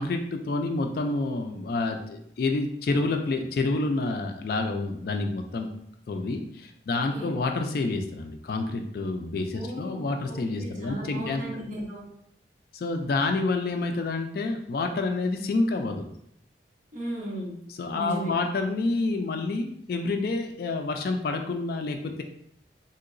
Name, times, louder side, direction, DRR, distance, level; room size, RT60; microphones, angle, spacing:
voice 1, 0.0-5.7 6.1-11.4 12.7-16.0 17.8-22.2, left 3 dB, 55° left, 5 dB, 0.3 m, -28 dB
voice 2, 6.9-7.3 9.5-12.1 16.9-17.6 17.9-18.3, equal, 45° right, -4 dB, 1.0 m, -36 dB
3.7 x 2.8 x 2.5 m, 0.72 s
head